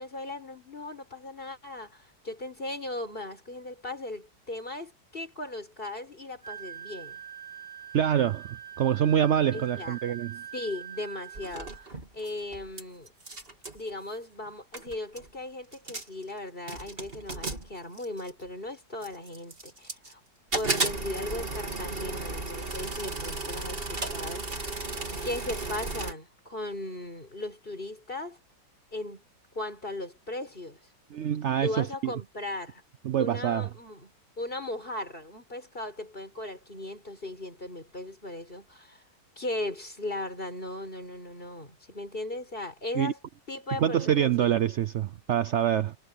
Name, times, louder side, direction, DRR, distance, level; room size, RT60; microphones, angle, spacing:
voice 1, 0.0-7.2 9.5-10.0 10.5-13.1 13.7-20.2 20.5-24.8 25.2-28.4 28.9-29.2 29.5-30.8 31.6-32.8 33.2-39.0 39.4-43.2 43.5-44.6, left 2 dB, 30° left, 5.7 m, -37 dB
Wind instrument woodwind instrument, 6.4-11.9, right 9 dB, 55° left, 5.5 m, -43 dB
voice 2, 7.9-10.4 31.1-32.1 33.0-33.7 42.9-43.1 43.8-46.0, right 10 dB, 80° right, 0.6 m, -26 dB
sound 1, 11.3-12.8 13.1-13.8 14.5-14.6 14.7-15.3 15.7-16.2 16.7-18.4 19.0-20.1 20.5-26.1, right 3 dB, 30° right, 3.5 m, -34 dB
omnidirectional pair, 1.9 m